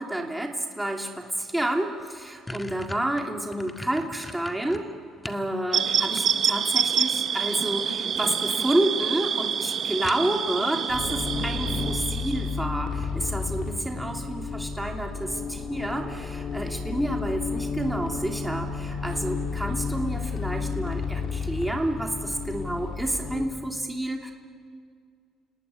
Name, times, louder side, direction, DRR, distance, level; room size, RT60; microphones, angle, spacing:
voice 1, 0.0-4.9 5.2-24.3, right 1 dB, 5° right, 2 dB, 3.0 m, -29 dB
sound 1, 1.6-1.7 2.0-5.5 5.9-6.7 7.8-8.2 8.6-8.7 9.0-9.1 9.4-9.5 10.0-10.6, left 1 dB, 15° left, 1.8 m, -40 dB
sound 2, 5.7-12.6, right 8 dB, 55° right, 1.5 m, -27 dB
sound 3, 10.9-23.4, left 5 dB, 60° left, 4.0 m, -31 dB
29.5 x 18.5 x 9.7 m, 2.1 s
supercardioid pair, 80°, 0 cm